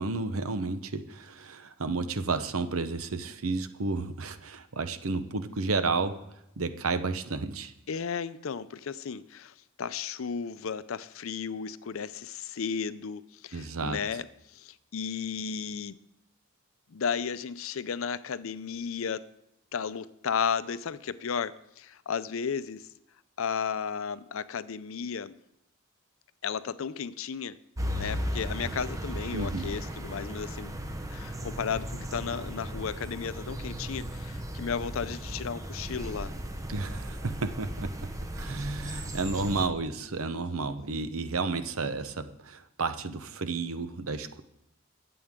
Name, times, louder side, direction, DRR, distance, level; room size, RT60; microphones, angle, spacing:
voice 1, 0.0-6.2 6.6-7.7 13.5-14.0 29.3-29.7 36.7-38.1 38.3-44.4, right 3 dB, 80° right, 10 dB, 0.8 m, -32 dB
voice 2, 7.9-14.3 14.5-16.0 16.9-19.2 19.7-22.9 23.4-25.4 26.4-27.6 27.9-30.7 31.1-36.3 40.3-40.7, left 6 dB, 70° left, 15 dB, 0.5 m, -34 dB
sound 1, 27.8-39.7, equal, 15° right, 0.8 m, -36 dB
22.5 x 7.8 x 3.7 m, 0.87 s
head